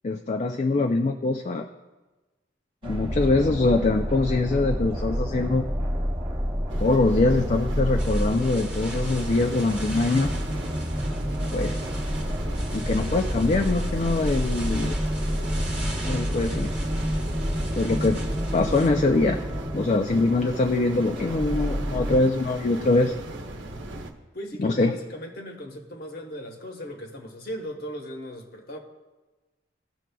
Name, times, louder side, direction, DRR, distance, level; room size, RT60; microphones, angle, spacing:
voice 1, 0.0-1.7 2.8-5.7 6.8-10.3 11.5-11.8 12.7-15.0 16.0-16.7 17.8-18.2 18.5-19.4 19.7-23.2 24.6-24.9, left 3 dB, 35° left, 0.4 m, -23 dB
sound 1, 2.8-22.2, equal, 25° right, 0.9 m, -29 dB
sound 2, 6.7-24.1, right 1 dB, 85° right, 0.9 m, -38 dB
sound 3, 8.0-18.9, right 2 dB, 5° right, 1.0 m, -42 dB
voice 2, 24.3-28.8, equal, 55° left, 1.1 m, -37 dB
17.0 x 6.1 x 2.3 m
head